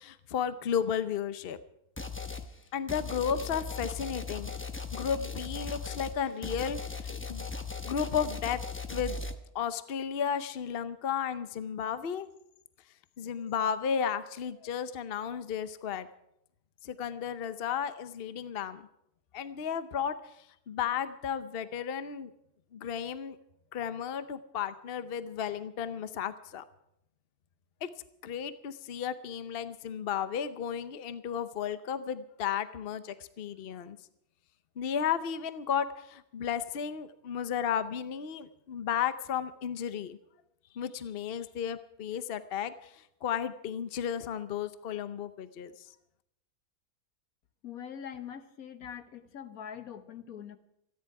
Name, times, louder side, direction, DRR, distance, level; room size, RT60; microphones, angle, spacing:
voice 1, 0.0-1.6 2.7-4.5 4.9-7.5 7.9-8.6 8.9-9.2 9.5-12.3 13.2-16.1 16.8-18.8 19.3-20.1 20.7-22.3 22.7-23.4 23.7-26.6 27.8-27.9 28.2-34.0 34.8-40.2 40.7-45.7, left 8 dB, 50° left, 12 dB, 0.9 m, -33 dB
sound 1, 2.0-2.5 2.9-9.4, left 4 dB, 10° left, 0.7 m, -38 dB
voice 2, 47.6-50.6, left 8 dB, 75° left, 10 dB, 1.5 m, -43 dB
28.0 x 10.5 x 4.8 m, 0.79 s
omnidirectional pair, 1.5 m